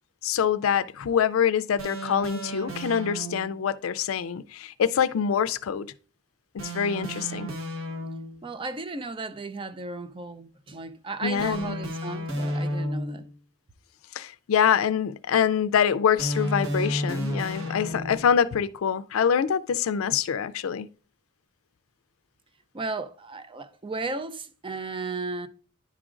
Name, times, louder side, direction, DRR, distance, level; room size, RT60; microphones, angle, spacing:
voice 1, 0.2-5.9 6.5-7.5 11.2-11.8 14.1-20.9, left 8 dB, 75° left, 0.4 m, -25 dB
sound 1, 1.8-3.6 6.6-8.5 11.4-13.3 16.2-18.4, equal, 75° right, 1.2 m, -32 dB
voice 2, 8.4-13.3 22.7-25.5, right 3 dB, 25° right, 0.5 m, -35 dB
10.5 x 4.9 x 2.5 m
head